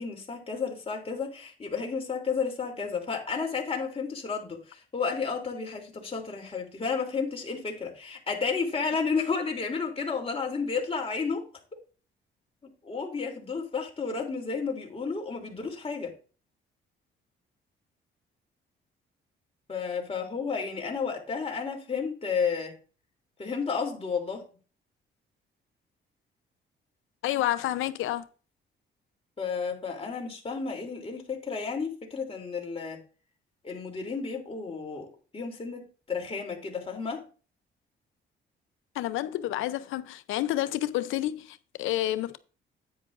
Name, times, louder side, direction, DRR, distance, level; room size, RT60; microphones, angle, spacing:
voice 1, 0.0-11.4 12.8-16.1 19.7-22.8 23.4-24.5 29.4-33.0 33.6-37.2, left 5 dB, 30° left, 3.2 m, -32 dB
voice 2, 27.2-28.2 38.9-42.4, left 14 dB, 85° left, 0.7 m, -29 dB
10.0 x 8.8 x 2.6 m
cardioid pair, 90°, 20 cm